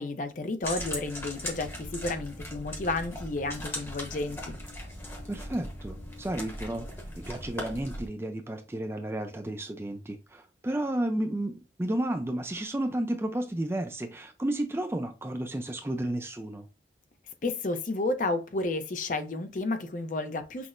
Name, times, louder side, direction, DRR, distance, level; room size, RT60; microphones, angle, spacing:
voice 1, 0.0-4.5 17.4-20.7, left 2 dB, 45° left, 0.5 m, -31 dB
sound 1, 0.6-8.1, left 1 dB, 15° left, 0.8 m, -39 dB
voice 2, 5.3-6.9 7.2-16.7, right 1 dB, 15° right, 0.3 m, -32 dB
5.8 x 2.0 x 2.5 m
head